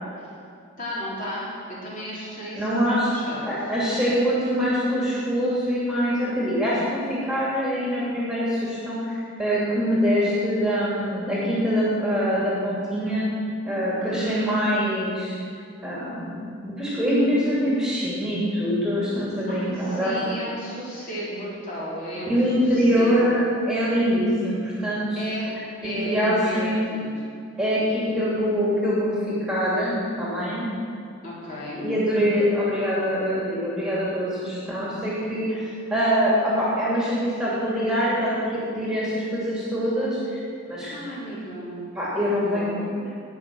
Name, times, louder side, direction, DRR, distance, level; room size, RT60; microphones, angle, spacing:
voice 1, 0.8-3.5 14.0-14.7 19.5-22.4 22.6-23.1 25.2-25.5 25.8-27.1 31.2-31.8 40.9-41.8 42.2-42.8, equal, 40° left, -7 dB, 3.7 m, -34 dB
voice 2, 2.5-3.1 3.5-13.2 13.7-15.4 15.8-20.1 22.3-25.2 25.8-26.8 27.6-30.7 31.7-40.9 41.9-43.1, equal, 5° right, -8 dB, 2.6 m, -24 dB
18.5 x 6.2 x 6.2 m, 2.4 s
head